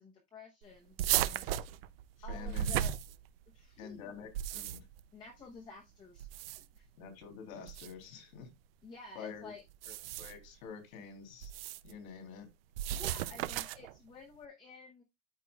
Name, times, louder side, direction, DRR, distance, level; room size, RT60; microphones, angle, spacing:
voice 1, 0.0-1.6 2.2-3.0 3.5-4.3 5.1-6.9 8.8-9.6 12.9-15.0, left 4 dB, 10° left, 0.8 m, -52 dB
sound 1, 1.0-3.6 4.2-5.0 6.2-6.8 7.7-7.9 9.7-10.5 11.4-11.9 12.7-13.9, right 12 dB, 50° right, 0.5 m, -35 dB
voice 2, 2.3-2.9 3.8-4.9 7.0-8.5 9.1-9.5 9.9-11.5 11.8-12.5, left 6 dB, 85° left, 3.2 m, -48 dB
13.0 x 4.5 x 2.3 m
supercardioid pair, 175°, 40 cm